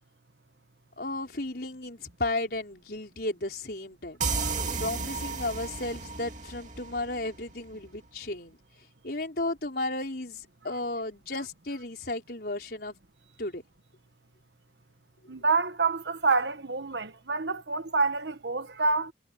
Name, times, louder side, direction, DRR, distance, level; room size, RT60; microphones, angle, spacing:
voice 1, 1.0-4.2 4.8-8.6 9.0-12.9 13.4-13.6, left 2 dB, 55° left, 4.9 m, -34 dB
sound 1, 4.2-7.7, right 4 dB, 40° right, 2.7 m, -33 dB
voice 2, 15.3-19.1, right 4 dB, 70° right, 1.4 m, -27 dB
head